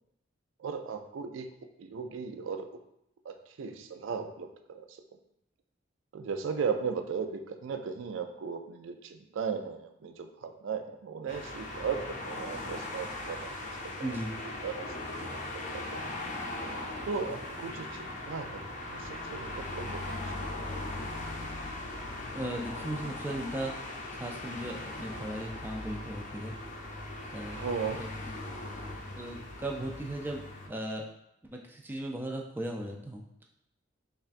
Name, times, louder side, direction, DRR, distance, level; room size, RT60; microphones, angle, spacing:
voice 1, 0.6-1.5 1.8-2.7 3.2-5.0 6.1-13.5 13.8-15.4 15.7-16.0 17.1-20.1 27.5-28.0, right 6 dB, 85° right, 6 dB, 0.4 m, -37 dB
sound 1, 11.3-30.7, left 2 dB, 40° left, 0.5 m, -39 dB
voice 2, 14.0-14.3 22.3-23.7 24.1-26.6 27.3-27.6 28.0-28.1 29.2-31.0 31.5-33.2, right 1 dB, 10° right, 1 dB, 0.3 m, -37 dB
5.5 x 2.4 x 2.5 m, 0.81 s
head